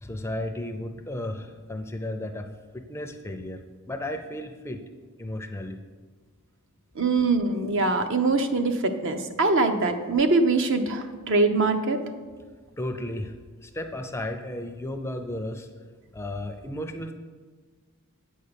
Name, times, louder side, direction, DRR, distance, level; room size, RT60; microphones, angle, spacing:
voice 1, 0.0-2.5 2.7-3.6 3.9-4.8 5.2-5.8 12.8-13.3 13.6-15.7 16.1-17.1, left 1 dB, 10° left, 6 dB, 0.4 m, -34 dB
voice 2, 7.0-12.0, right 3 dB, 60° right, 7 dB, 0.7 m, -23 dB
8.6 x 5.5 x 6.8 m, 1.5 s
head